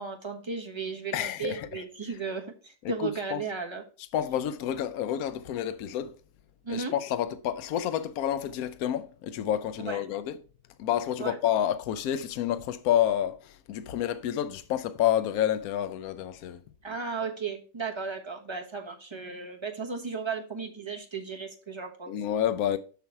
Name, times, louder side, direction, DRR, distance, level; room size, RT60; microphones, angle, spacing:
voice 1, 0.0-3.8 6.6-6.9 9.8-10.0 11.2-11.4 16.8-22.1, right 5 dB, 20° right, 1.2 m, -35 dB
voice 2, 1.1-1.8 3.0-3.4 4.1-6.1 6.7-10.4 10.8-16.6 22.1-22.8, left 10 dB, 80° left, 1.1 m, -29 dB
7.1 x 6.0 x 4.5 m
omnidirectional pair, 1.5 m